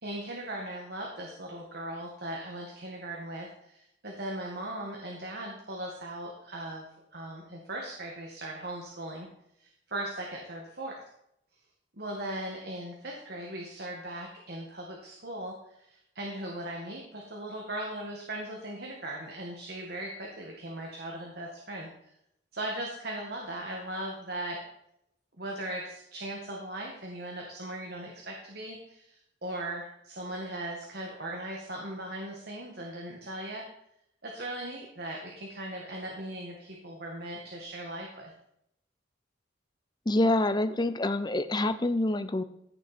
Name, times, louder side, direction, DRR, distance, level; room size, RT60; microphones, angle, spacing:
voice 1, 0.0-6.8 7.1-9.3 9.6-11.0 12.0-21.9 22.5-24.6 25.4-33.6 34.2-38.3, right 1 dB, 55° right, -1 dB, 2.0 m, -38 dB
voice 2, 40.1-42.4, left 2 dB, 20° left, 11 dB, 0.7 m, -26 dB
15.5 x 7.0 x 4.4 m, 0.76 s
head